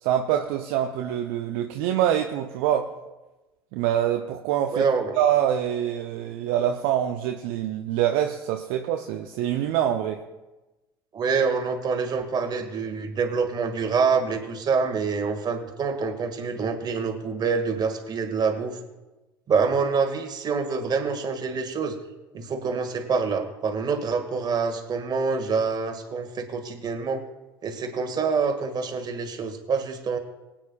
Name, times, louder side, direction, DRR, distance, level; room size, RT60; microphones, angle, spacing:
voice 1, 0.0-2.9 3.7-4.9 5.2-10.2, right 10 dB, 60° right, 5 dB, 0.7 m, -25 dB
voice 2, 4.7-5.2 11.1-18.8 19.5-22.0 22.3-27.2 27.6-30.2, right 5 dB, 35° right, 5 dB, 1.9 m, -26 dB
23.5 x 9.0 x 2.4 m, 1.1 s
figure-of-eight pair, 60°, 12 cm